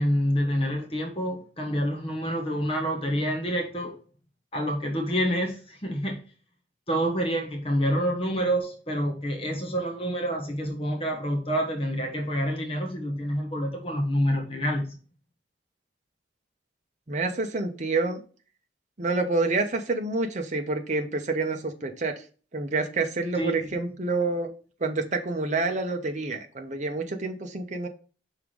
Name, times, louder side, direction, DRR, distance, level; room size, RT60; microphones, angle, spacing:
voice 1, 0.0-3.9 4.5-6.2 6.9-14.9 23.3-23.7, equal, 30° left, 2 dB, 1.2 m, -27 dB
voice 2, 17.1-18.2 19.0-22.1 22.5-24.5 24.8-27.9, right 3 dB, 40° right, 5 dB, 0.8 m, -28 dB
5.7 x 3.5 x 4.9 m, 0.38 s
head